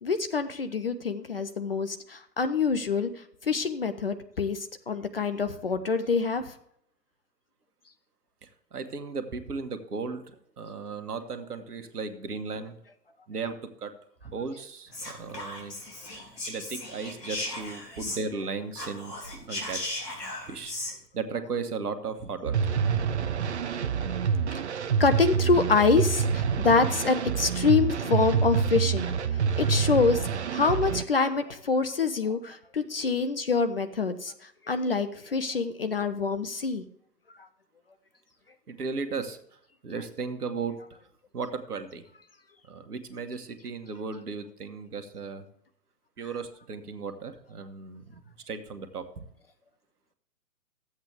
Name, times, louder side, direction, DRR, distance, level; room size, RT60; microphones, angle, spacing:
voice 1, 0.0-6.5 24.5-36.8, left 4 dB, 40° left, 10 dB, 0.5 m, -26 dB
voice 2, 8.4-12.8 13.3-13.9 14.2-15.7 16.1-19.1 19.5-20.0 20.5-20.7 21.1-22.5 38.7-39.4 39.8-40.8 41.3-42.0 42.7-45.4 46.2-49.2, right 4 dB, 65° right, 8 dB, 1.3 m, -36 dB
Whispering, 14.9-18.4 18.7-20.9, left 1 dB, 70° left, 3.0 m, -37 dB
sound 1, 22.5-31.0, right 6 dB, 45° right, 0.5 m, -27 dB
13.5 x 8.0 x 3.4 m, 0.70 s
figure-of-eight pair, 125°, 50 cm